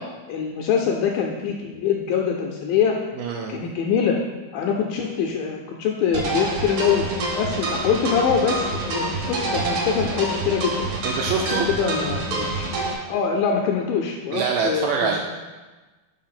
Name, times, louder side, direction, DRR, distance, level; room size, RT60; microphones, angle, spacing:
voice 1, 0.3-3.0 3.5-4.2 4.5-7.0 7.4-10.9 11.4-12.7 13.1-15.1, left 7 dB, 80° left, 0 dB, 2.1 m, -24 dB
voice 2, 3.2-3.6 11.0-11.7 14.3-15.2, right 6 dB, 85° right, 2 dB, 1.9 m, -24 dB
sound 1, 6.1-12.9, right 2 dB, 65° right, 2.2 m, -27 dB
5.3 x 4.5 x 5.7 m, 1.3 s
omnidirectional pair, 4.3 m